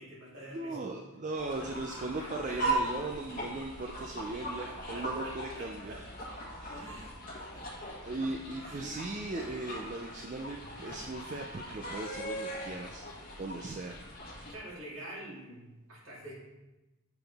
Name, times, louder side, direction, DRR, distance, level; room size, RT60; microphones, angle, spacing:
voice 1, 0.0-1.2 1.6-2.7 3.3-3.4 3.9-4.0 4.7-6.0 6.7-7.7 8.1-8.2 8.6-8.9 10.6-10.8 14.5-16.4, right 1 dB, 65° right, -5 dB, 2.3 m, -48 dB
voice 2, 0.5-6.0 6.4-6.8 8.0-14.0 14.3-14.5, right 2 dB, 35° right, 2 dB, 0.4 m, -38 dB
sound 1, 1.4-14.5, right 1 dB, 40° left, 1.5 m, -39 dB
7.0 x 5.7 x 3.4 m, 1.0 s
head